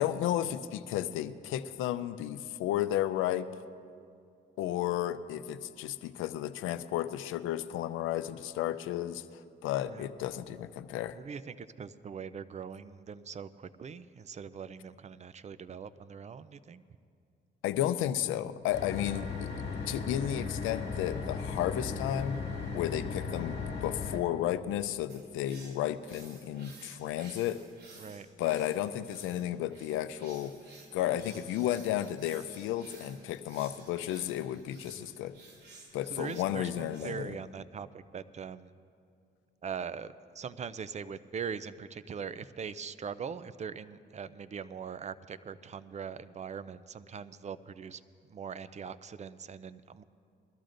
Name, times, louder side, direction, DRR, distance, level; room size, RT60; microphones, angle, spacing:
voice 1, 0.0-3.5 4.6-11.2 17.6-19.5 19.9-22.4 22.7-27.6 28.4-30.5 30.9-35.3 35.9-37.3, left 12 dB, 90° left, 13 dB, 0.5 m, -33 dB
voice 2, 11.1-16.8 19.1-19.2 28.0-28.3 34.9-35.1 36.1-38.7 39.6-48.0 48.3-50.0, right 6 dB, 35° right, 15 dB, 0.4 m, -41 dB
sound 1, 18.7-24.2, left 4 dB, 55° left, 1.9 m, -36 dB
sound 2, 25.1-37.1, right 3 dB, 60° right, 2.8 m, -55 dB
21.5 x 13.5 x 2.6 m, 2.4 s
cardioid pair, 90°, 20 cm